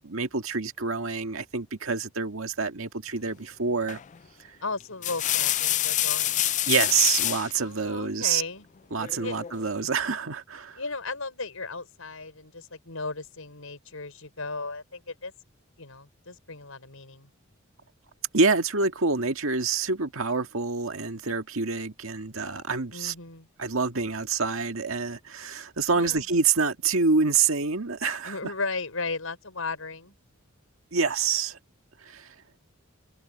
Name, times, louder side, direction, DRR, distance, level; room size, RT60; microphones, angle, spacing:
voice 1, 0.0-4.0 6.7-8.4 8.9-10.8 18.3-23.1 23.6-28.5 30.9-31.6 32.0-32.3, right 4 dB, 80° right, 1.8 m, -27 dB
sound 1, 3.9-4.2 4.8-7.5 9.0-9.6, left 13 dB, 35° left, 0.4 m, -27 dB
voice 2, 4.6-6.4 7.5-8.7 9.2-9.4 10.8-15.3 15.8-17.3 22.9-23.5 25.9-26.3 28.2-30.1, left 3 dB, 85° left, 5.7 m, -36 dB
head